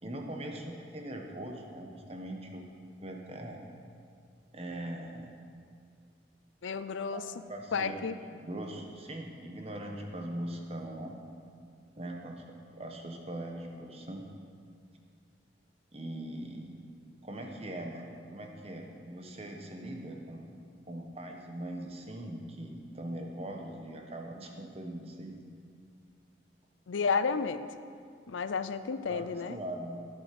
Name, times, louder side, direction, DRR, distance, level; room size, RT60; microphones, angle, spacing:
voice 1, 0.0-2.6 3.0-3.6 4.5-5.3 7.1-8.0 8.4-11.1 12.0-14.2 15.9-16.8 17.2-20.5 20.9-25.4 29.1-30.0, right 1 dB, 30° right, 2 dB, 1.1 m, -41 dB
voice 2, 6.6-7.2 7.7-8.2 26.9-27.6 28.3-29.6, left 5 dB, 90° left, 12 dB, 0.5 m, -31 dB
12.0 x 8.1 x 6.0 m, 2.2 s
head